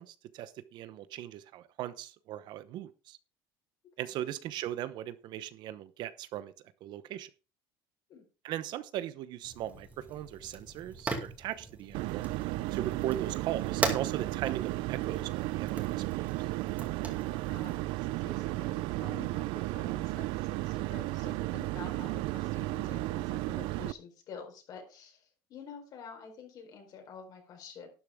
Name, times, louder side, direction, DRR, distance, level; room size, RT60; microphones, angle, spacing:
voice 1, 0.0-3.2 4.0-6.5 6.8-7.3 8.4-12.2 12.7-16.3, right 12 dB, 55° right, 14 dB, 0.9 m, -38 dB
Fire, 9.4-17.8, right 3 dB, 15° right, 2.4 m, -40 dB
sound 1, 11.9-23.9, right 19 dB, 70° right, 0.5 m, -34 dB
voice 2, 17.3-27.9, left 6 dB, 45° left, 4 dB, 4.4 m, -49 dB
12.0 x 10.5 x 3.6 m, 0.32 s
cardioid pair, 155°, 9 cm